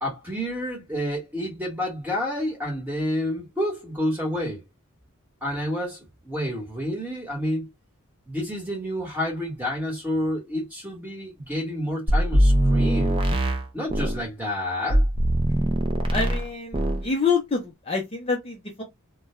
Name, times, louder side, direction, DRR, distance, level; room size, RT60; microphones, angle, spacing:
voice 1, 0.0-4.6 5.4-7.7 8.3-13.2 13.7-15.0, equal, 10° right, 1.1 m, -29 dB
sound 1, 12.1-14.2 14.9-16.5 16.7-17.1, right 1 dB, 25° right, 0.4 m, -21 dB
voice 2, 16.1-18.8, left 4 dB, 25° left, 0.5 m, -27 dB
2.3 x 2.2 x 2.9 m
head